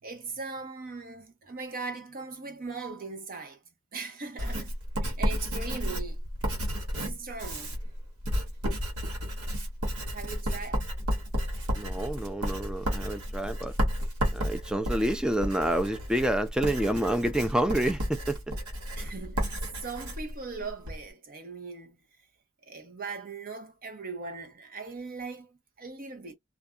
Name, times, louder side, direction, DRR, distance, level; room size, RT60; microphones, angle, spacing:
voice 1, 0.0-3.6 3.9-4.7 5.0-6.2 6.9-7.8 10.1-10.9 19.0-22.0 22.6-26.3, right 4 dB, 40° right, 0.8 m, -39 dB
Writing, 4.4-21.0, equal, 85° right, 1.1 m, -32 dB
voice 2, 11.8-13.7 14.3-18.4, right 1 dB, 5° right, 0.3 m, -28 dB
2.6 x 2.3 x 2.3 m
head